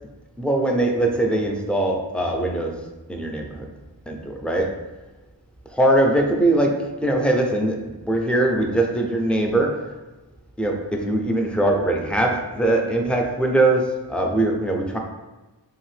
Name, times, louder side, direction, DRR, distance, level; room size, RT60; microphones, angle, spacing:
voice 1, 0.4-2.7 3.1-3.7 4.1-4.7 5.7-6.7 7.0-9.8 10.6-15.0, right 1 dB, 5° left, 1 dB, 0.5 m, -21 dB
2.8 x 2.5 x 3.3 m, 1.1 s
wide cardioid pair, 40°, 44 cm